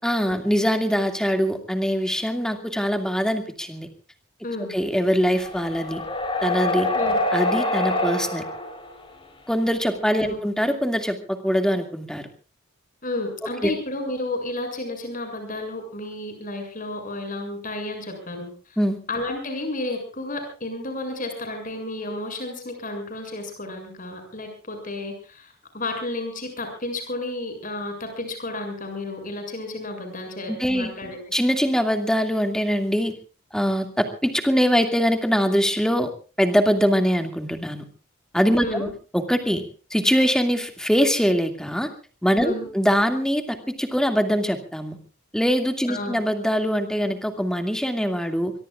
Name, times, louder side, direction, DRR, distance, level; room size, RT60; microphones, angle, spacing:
voice 1, 0.0-3.9 4.7-6.0 6.4-6.9 7.3-8.4 9.5-12.3 13.6-13.7 18.8-19.0 30.5-30.9 31.3-33.1 33.5-36.1 36.4-37.8 38.3-38.9 39.1-39.6 39.9-41.9 42.2-45.0 45.3-48.6, equal, 5° left, 5 dB, 2.3 m, -23 dB
sound 1, 5.3-8.9 10.0-10.1, left 1 dB, 25° left, 4.4 m, -25 dB
voice 2, 13.0-18.8 19.1-31.2 38.6-38.9 42.4-42.7 45.9-46.2, left 2 dB, 40° left, 5 dB, 7.1 m, -32 dB
23.5 x 23.5 x 2.5 m, 0.37 s
head